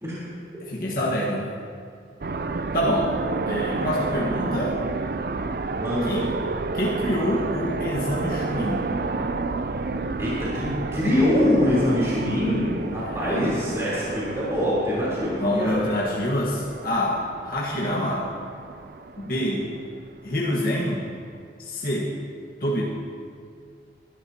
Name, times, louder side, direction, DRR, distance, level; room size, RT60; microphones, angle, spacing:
voice 1, 0.6-1.5 2.7-3.1 3.5-4.8 6.0-6.3 6.7-8.9 13.0-13.4 15.4-18.3 19.2-19.7 20.2-21.1 21.6-22.1 22.6-22.8, equal, 55° left, -5 dB, 1.5 m, -26 dB
sound 1, 2.2-20.5, right 3 dB, 55° right, 0.5 m, -31 dB
voice 2, 5.8-6.3 10.2-15.9, left 1 dB, 15° right, -9 dB, 3.6 m, -24 dB
21.0 x 12.0 x 2.9 m, 2.2 s
head